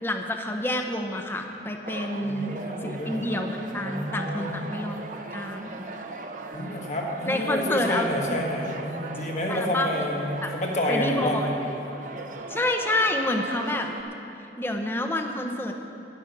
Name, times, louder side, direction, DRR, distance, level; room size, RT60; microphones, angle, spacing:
voice 1, 0.0-2.6 2.8-5.0 5.3-5.8 7.3-8.4 9.5-9.9 10.4-10.5 10.9-11.5 12.5-13.9 14.6-15.7, left 1 dB, 15° left, 4 dB, 0.8 m, -28 dB
sound 1, 1.8-14.0, right 2 dB, 45° right, 0.7 m, -39 dB
voice 2, 2.2-3.3 3.8-4.7 6.5-11.6, left 1 dB, 40° left, 0 dB, 1.6 m, -29 dB
12.5 x 10.5 x 5.9 m, 2.8 s
head